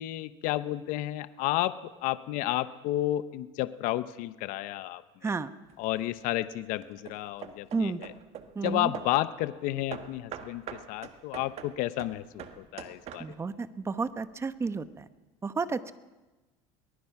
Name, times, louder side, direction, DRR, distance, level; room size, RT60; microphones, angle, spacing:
voice 1, 0.0-5.0 5.8-7.9 8.6-13.4, left 15 dB, 60° left, 13 dB, 0.9 m, -31 dB
Hammer / Wood, 5.7-6.2 6.8-9.3 9.9-13.6, right 8 dB, 45° right, 1.6 m, -44 dB
voice 2, 7.7-8.0 8.5-8.9 13.2-15.0 15.4-15.9, right 4 dB, 20° right, 12 dB, 1.0 m, -31 dB
23.0 x 19.5 x 6.0 m, 1.1 s
supercardioid pair, 130°, 15 cm